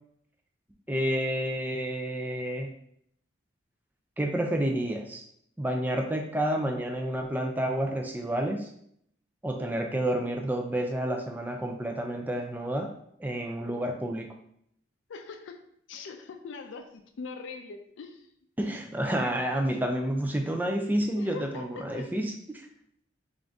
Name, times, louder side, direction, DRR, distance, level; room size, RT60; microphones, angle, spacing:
voice 1, 0.9-2.7 4.2-5.2 5.6-8.7 9.4-12.9 13.2-14.3 18.6-22.3, right 1 dB, 10° right, 3 dB, 0.3 m, -29 dB
voice 2, 15.1-18.3 21.1-22.1, left 4 dB, 80° left, 5 dB, 0.4 m, -42 dB
3.8 x 2.5 x 3.4 m, 0.69 s
head